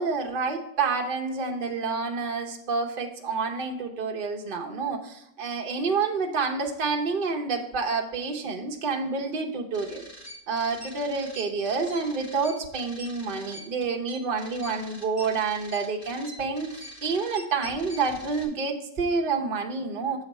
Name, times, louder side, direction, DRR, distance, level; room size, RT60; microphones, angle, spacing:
voice 1, 0.0-10.1 10.5-20.2, right 4 dB, 40° right, 2 dB, 0.9 m, -28 dB
sound 1, 9.7-18.4, left 1 dB, 30° left, 1.7 m, -44 dB
7.2 x 4.0 x 5.4 m, 0.82 s
omnidirectional pair, 1.9 m